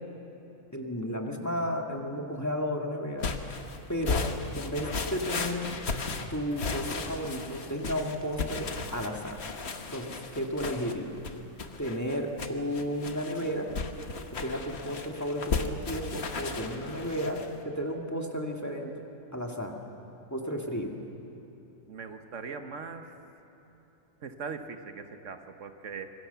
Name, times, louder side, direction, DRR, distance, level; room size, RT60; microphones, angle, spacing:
voice 1, 0.7-3.3 3.9-4.3 4.5-5.7 6.1-9.4 9.9-11.2 11.8-13.7 14.3-19.0 19.3-19.8 20.3-21.0, equal, 15° left, 1 dB, 1.9 m, -33 dB
sound 1, 3.2-17.5, left 4 dB, 60° left, 1.5 m, -35 dB
voice 2, 21.9-23.1 24.2-26.1, right 5 dB, 75° right, 7 dB, 1.5 m, -40 dB
25.5 x 22.5 x 6.9 m, 2.9 s
omnidirectional pair, 1.3 m